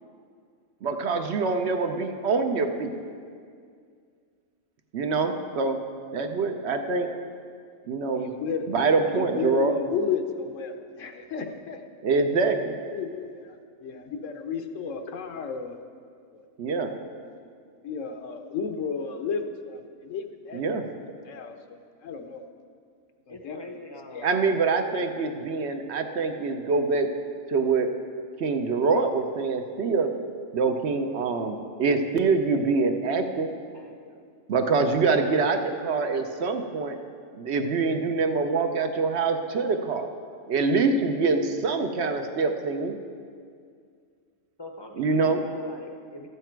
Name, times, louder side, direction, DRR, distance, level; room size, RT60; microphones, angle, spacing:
voice 1, 0.8-3.0 4.9-5.8 6.1-7.1 7.9-8.3 8.7-9.7 12.0-12.8 16.6-16.9 20.5-20.8 24.2-27.1 27.5-27.9 28.4-30.1 30.5-33.5 34.5-37.0 37.3-40.1 40.5-43.0 45.0-45.4, right 4 dB, 60° right, 6 dB, 0.9 m, -25 dB
voice 2, 8.1-8.7 9.1-11.9 12.3-12.4 12.9-15.8 16.3-16.7 17.2-17.3 17.8-20.6 21.0-22.4 23.3-23.8 24.1-24.4, left 5 dB, 75° left, 7 dB, 1.1 m, -33 dB
voice 3, 23.3-24.3 33.7-34.2 44.6-46.3, left 1 dB, 25° left, 3 dB, 0.6 m, -43 dB
13.5 x 8.2 x 4.5 m, 2.2 s
omnidirectional pair, 1.4 m